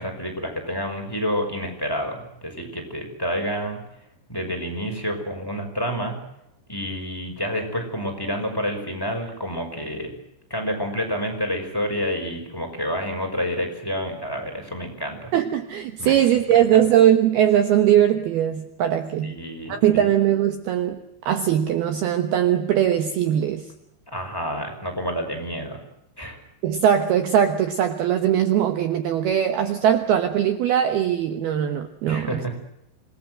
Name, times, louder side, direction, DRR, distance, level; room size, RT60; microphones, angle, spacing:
voice 1, 0.0-3.8 4.3-6.2 6.7-10.1 10.5-15.3 16.0-16.2 19.2-20.1 24.1-25.8 26.2-26.4 32.1-32.5, equal, 5° left, 4 dB, 5.2 m, -29 dB
voice 2, 15.3-19.4 19.7-21.0 21.3-23.7 26.6-32.4, right 10 dB, 70° right, 8 dB, 2.8 m, -20 dB
27.5 x 19.5 x 7.9 m, 0.82 s
omnidirectional pair, 5.4 m